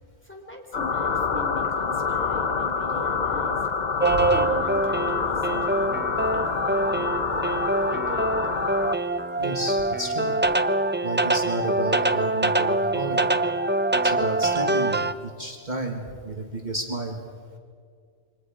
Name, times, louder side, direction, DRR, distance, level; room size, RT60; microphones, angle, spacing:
voice 1, 0.2-3.7 4.0-7.1 7.7-8.6, left 2 dB, 10° left, 0 dB, 3.8 m, -40 dB
sound 1, 0.7-9.0, left 5 dB, 40° left, 0.9 m, -27 dB
sound 2, 4.0-15.1, right 2 dB, 15° right, 0.5 m, -24 dB
voice 2, 9.4-10.3 11.0-13.3 14.0-17.2, right 2 dB, 40° right, 1 dB, 2.1 m, -32 dB
29.0 x 25.0 x 5.1 m, 2.2 s
omnidirectional pair, 1.2 m